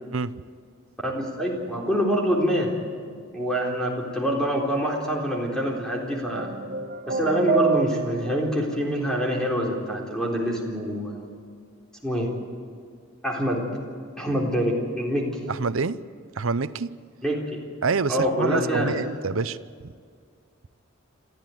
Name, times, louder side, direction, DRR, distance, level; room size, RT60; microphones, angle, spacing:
voice 1, 1.0-2.7 3.3-6.6 7.1-11.3 12.0-12.3 13.2-13.7 14.2-15.3 17.2-17.6 18.1-19.0, equal, 5° left, -2 dB, 3.9 m, -25 dB
sound 1, 6.3-8.4, right 5 dB, 45° right, 1.1 m, -27 dB
voice 2, 15.5-16.0 16.4-16.9 17.8-19.6 19.8-19.9, right 4 dB, 75° right, 15 dB, 0.7 m, -27 dB
28.5 x 13.5 x 9.3 m, 2.1 s
head